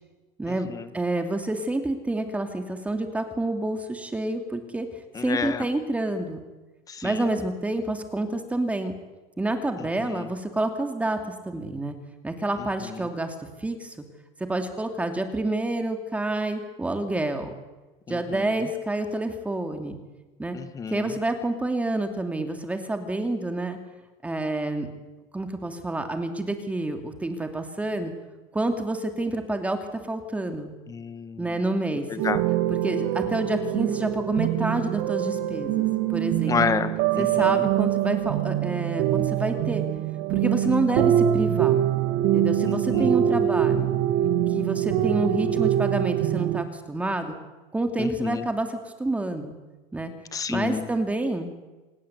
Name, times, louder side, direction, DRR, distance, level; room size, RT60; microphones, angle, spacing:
voice 1, 0.4-4.9 5.2-6.4 7.0-9.0 9.4-11.2 11.4-12.0 12.2-14.0 14.5-17.5 18.1-20.0 20.4-20.6 20.9-23.8 24.2-24.9 25.3-28.1 28.5-29.8 30.1-30.7 31.4-32.2 32.7-36.6 37.2-39.8 40.3-41.8 42.3-43.9 44.5-47.3 47.7-49.5 49.9-50.1 50.5-51.5, right 2 dB, 10° right, 6 dB, 2.7 m, -28 dB
voice 2, 5.1-5.6 6.9-7.2 10.0-10.3 12.8-13.1 18.1-18.6 20.5-21.1 30.9-31.5 32.1-32.4 36.5-37.7 40.6-40.8 42.6-43.1 48.0-48.4 50.3-50.9, left 6 dB, 25° left, 11 dB, 1.7 m, -30 dB
sound 1, 32.2-46.6, right 12 dB, 75° right, 2.4 m, -24 dB
26.5 x 19.5 x 8.2 m, 1.2 s
cardioid pair, 140°, 15 cm